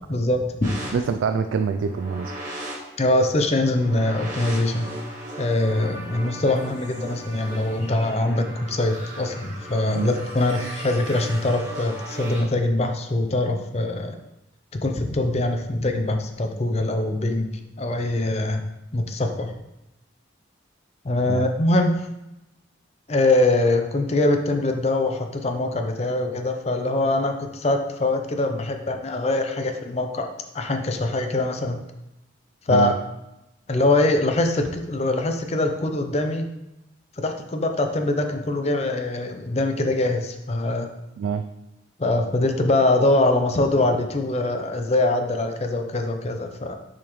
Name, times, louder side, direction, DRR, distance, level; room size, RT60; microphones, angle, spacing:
voice 1, 0.1-0.9 3.0-4.9 5.4-14.2 14.7-17.5 17.8-18.6 18.9-19.5 21.0-22.1 23.1-30.3 30.5-31.8 32.7-32.9 33.7-36.5 37.2-40.9 42.0-46.8, left 2 dB, 35° left, 5 dB, 0.5 m, -23 dB
sound 1, 0.6-12.4, right 1 dB, 40° right, 1.8 m, -37 dB
voice 2, 0.9-2.3 9.9-10.1 21.3-21.5 32.7-32.9 41.2-41.4, right 6 dB, 80° right, 8 dB, 0.3 m, -25 dB
7.0 x 5.0 x 3.1 m, 0.92 s
head